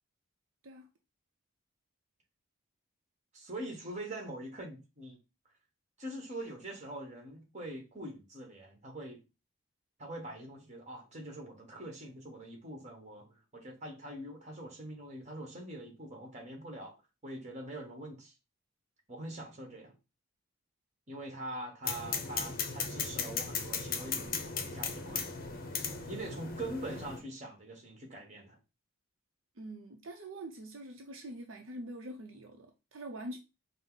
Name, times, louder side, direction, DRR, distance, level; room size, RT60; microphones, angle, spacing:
voice 1, 3.3-5.2 6.0-9.2 10.0-17.0 17.2-18.3 19.1-20.0 21.1-25.3 26.1-28.6, right 1 dB, 35° right, 1.2 m, -43 dB
sound 1, 21.8-27.2, left 5 dB, 45° left, 0.7 m, -37 dB
voice 2, 29.6-33.4, right 1 dB, 70° right, 0.6 m, -44 dB
5.2 x 2.0 x 3.9 m
head